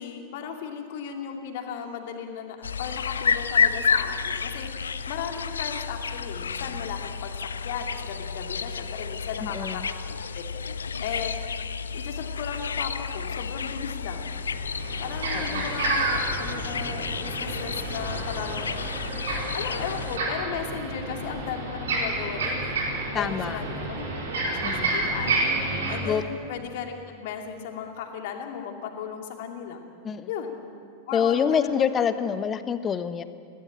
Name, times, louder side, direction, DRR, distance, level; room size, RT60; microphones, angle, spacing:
voice 1, 0.0-4.7 5.1-7.4 7.6-9.8 10.2-10.4 11.0-11.4 11.9-14.3 15.0-19.3 19.5-22.8 23.1-24.1 24.4-25.5 25.9-29.8 30.3-30.6 31.1-31.9, left 7 dB, 50° left, 3 dB, 2.5 m, -36 dB
sound 1, 2.6-20.2, left 6 dB, 70° left, 0.6 m, -30 dB
voice 2, 9.4-9.9 15.3-15.7 23.1-23.6 24.6-25.0 26.0-26.2 30.0-30.3 31.1-33.2, left 7 dB, 25° left, 12 dB, 1.0 m, -26 dB
sound 2, 14.3-25.9, right 2 dB, 65° right, 4.4 m, -30 dB
21.5 x 17.0 x 8.7 m, 2.2 s
figure-of-eight pair, 90°, 0 cm